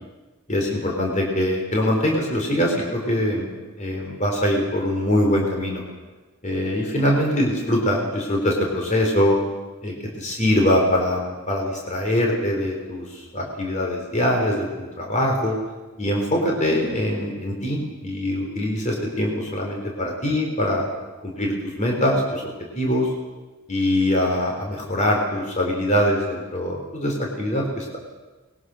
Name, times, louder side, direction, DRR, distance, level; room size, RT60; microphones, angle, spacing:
voice 1, 0.5-5.8 6.4-9.4 9.8-15.6 16.0-20.8 21.2-22.4 22.8-23.1 23.7-28.0, left 1 dB, 35° left, 0 dB, 4.1 m, -23 dB
23.5 x 21.5 x 6.4 m, 1.2 s
head